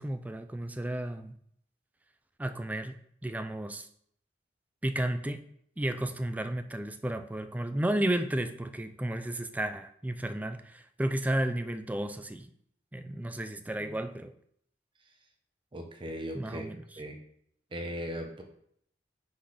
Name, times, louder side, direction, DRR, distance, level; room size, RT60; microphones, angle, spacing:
voice 1, 0.0-1.3 2.4-2.9 3.2-3.9 4.8-5.4 5.8-12.5 12.9-14.3 16.3-16.8, right 1 dB, 10° right, 9 dB, 0.3 m, -33 dB
voice 2, 15.7-16.7 17.0-17.2 17.7-18.4, equal, 30° right, 3 dB, 0.8 m, -38 dB
5.8 x 4.1 x 4.9 m, 0.68 s
head